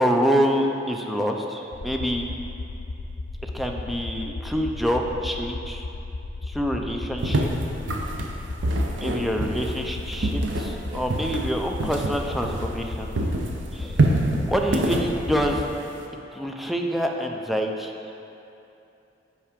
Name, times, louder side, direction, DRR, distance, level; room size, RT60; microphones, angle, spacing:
voice 1, 0.0-2.2 3.5-5.8 6.5-7.5 9.0-13.1 13.7-14.0 14.5-15.7 16.3-17.9, equal, ahead, 1 dB, 0.4 m, -26 dB
sound 1, 1.7-15.7, left 3 dB, 85° left, 0.4 m, -35 dB
sound 2, 7.2-12.9 13.1-16.1, right 2 dB, 85° right, 0.6 m, -26 dB
5.8 x 4.5 x 5.0 m, 2.8 s
head